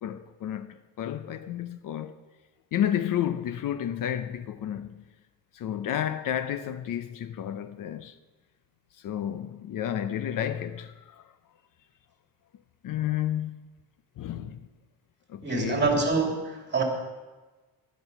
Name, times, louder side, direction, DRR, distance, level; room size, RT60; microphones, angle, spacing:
voice 1, 0.0-2.1 2.7-5.0 5.5-8.1 9.0-11.2 12.8-13.6 14.2-14.6 15.3-16.1, left 10 dB, 60° left, 0.7 m, -31 dB
voice 2, 15.4-16.8, right 4 dB, 30° right, 2.8 m, -26 dB
12.5 x 11.5 x 5.8 m
cardioid pair, 140°, 37 cm